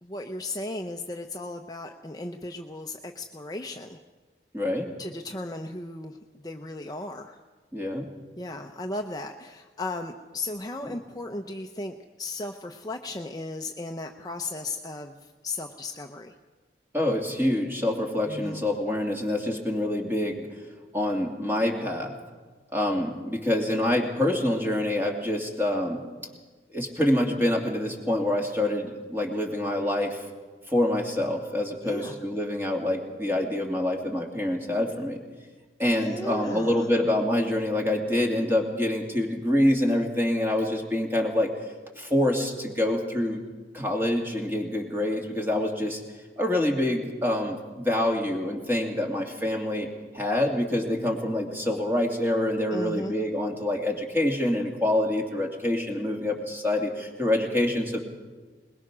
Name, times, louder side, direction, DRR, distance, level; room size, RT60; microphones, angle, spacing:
voice 1, 0.0-4.0 5.0-7.4 8.4-16.4 18.3-18.6 31.8-32.2 35.9-36.9 52.7-53.1, left 2 dB, 20° left, 4 dB, 0.7 m, -36 dB
voice 2, 4.5-4.9 7.7-8.1 16.9-20.5 20.9-22.1 22.7-26.0 26.7-30.2 30.7-35.2 35.8-41.5 42.0-43.4 43.7-46.0 46.4-49.9 50.1-58.0, left 1 dB, 15° right, 1 dB, 2.5 m, -26 dB
21.5 x 21.0 x 6.2 m, 1.4 s
head